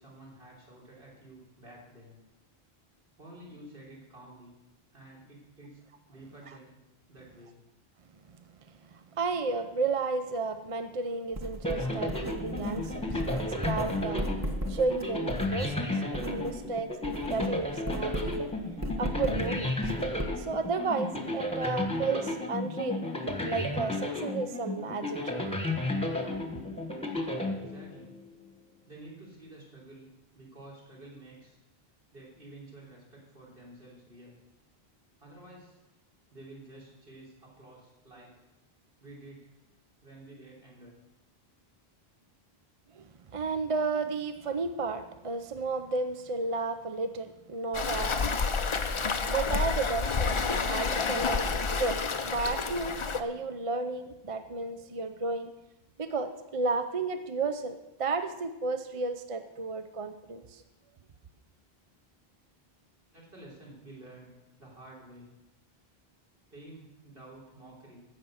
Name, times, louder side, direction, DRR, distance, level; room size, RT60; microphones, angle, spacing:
voice 1, 0.0-2.2 3.2-4.5 4.9-5.8 6.1-6.8 7.1-7.6 27.5-28.1 28.9-30.1 30.3-31.6 32.1-34.4 35.2-35.8 36.3-38.4 39.0-39.5 40.0-41.0 63.1-65.3 66.5-68.0, right 1 dB, 60° right, -4 dB, 3.9 m, -50 dB
voice 2, 8.9-14.3 14.7-18.5 19.0-19.7 20.4-23.0 23.4-25.4 42.9-48.4 48.6-55.5 56.0-60.6, right 3 dB, 40° right, 8 dB, 0.6 m, -33 dB
Writing, 11.3-16.6 16.9-20.6, right 1 dB, 15° right, 1.0 m, -37 dB
sound 1, 11.6-28.2, left 1 dB, 5° left, 1.3 m, -33 dB
Waves surf, 47.7-53.2, left 4 dB, 35° left, 0.5 m, -29 dB
15.5 x 6.6 x 6.3 m, 0.96 s
omnidirectional pair, 1.0 m